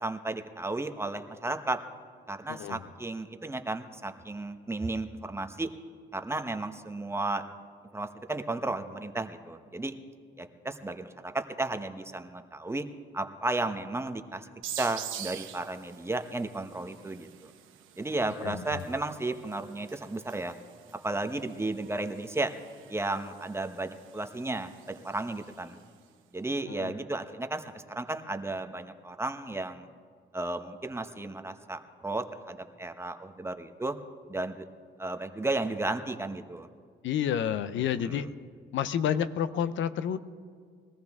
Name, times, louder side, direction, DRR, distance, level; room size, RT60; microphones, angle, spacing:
voice 1, 0.0-1.8 2.3-5.7 6.1-7.4 7.9-9.9 10.4-12.8 13.1-14.5 14.8-17.5 18.0-20.5 21.0-22.5 22.9-25.8 26.3-29.9 30.3-33.9 34.3-34.6 35.0-36.7 38.0-38.3, right 2 dB, 15° right, 7 dB, 0.9 m, -34 dB
voice 2, 2.5-2.9 18.4-18.8 26.7-27.0 37.0-38.3 38.7-40.2, left 9 dB, 75° left, 13 dB, 0.6 m, -30 dB
sound 1, 14.6-26.0, right 10 dB, 85° right, 0.9 m, -47 dB
21.0 x 14.0 x 3.6 m, 2.1 s
cardioid pair, 90°, 20 cm